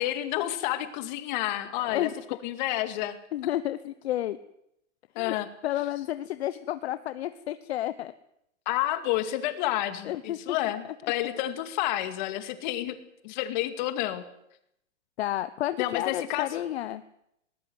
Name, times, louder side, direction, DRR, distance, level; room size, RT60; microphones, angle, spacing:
voice 1, 0.0-2.1 2.4-3.2 5.1-5.5 8.7-13.0 13.2-14.3 15.8-16.6, left 14 dB, 40° left, 9 dB, 2.3 m, -30 dB
voice 2, 3.3-4.4 5.2-5.4 5.6-8.1 10.0-10.4 10.6-10.7 11.0-11.1 15.2-17.0, left 13 dB, 60° left, 12 dB, 1.0 m, -31 dB
20.0 x 19.5 x 8.0 m, 0.77 s
hypercardioid pair, 155°, 36 cm